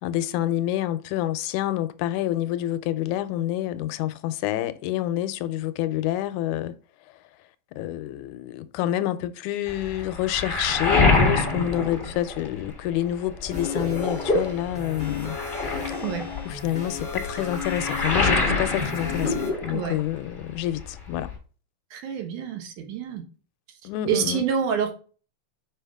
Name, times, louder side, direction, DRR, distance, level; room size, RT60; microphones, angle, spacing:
voice 1, 0.0-6.7 7.8-15.4 16.5-21.3 23.8-24.4, left 13 dB, 85° left, 2.0 m, -28 dB
Waves surf, 9.7-12.9 13.2-20.2 20.4-21.4, left 3 dB, 65° left, 0.5 m, -26 dB
sound 1, 13.5-19.5, left 6 dB, 10° left, 0.9 m, -36 dB
voice 2, 21.9-23.2 24.1-24.9, right 7 dB, 80° right, 2.6 m, -27 dB
5.6 x 5.2 x 3.4 m
omnidirectional pair, 3.5 m